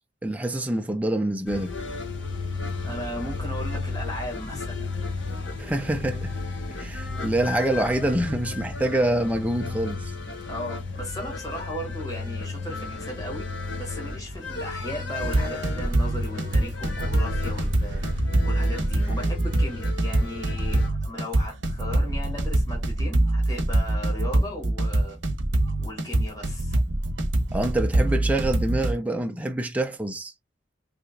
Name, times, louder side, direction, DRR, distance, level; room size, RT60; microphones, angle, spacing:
voice 1, 0.2-1.7 5.6-6.3 6.7-10.1 27.5-30.3, right 1 dB, 10° right, 0.3 m, -26 dB
sound 1, 1.5-20.9, left 3 dB, 80° left, 1.0 m, -33 dB
voice 2, 2.8-4.9 10.4-13.5 13.8-18.0 18.4-25.2 25.8-26.8, left 1 dB, 20° left, 1.2 m, -36 dB
sound 2, 15.2-28.9, right 1 dB, 80° right, 0.9 m, -24 dB
3.2 x 2.8 x 2.6 m
head